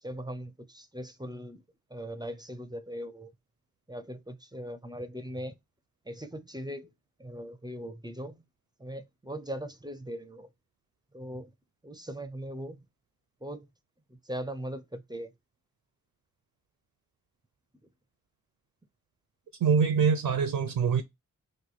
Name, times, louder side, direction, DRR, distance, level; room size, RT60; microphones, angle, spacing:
voice 1, 0.0-1.6 1.9-3.3 3.9-5.6 6.1-6.9 7.2-8.4 8.8-10.5 11.1-11.5 11.8-12.9 13.4-13.7 14.1-15.3, equal, 10° right, 0.5 m, -39 dB
voice 2, 19.6-21.0, right 6 dB, 75° right, 0.5 m, -24 dB
3.0 x 2.5 x 3.9 m
cardioid pair, 60°, 35 cm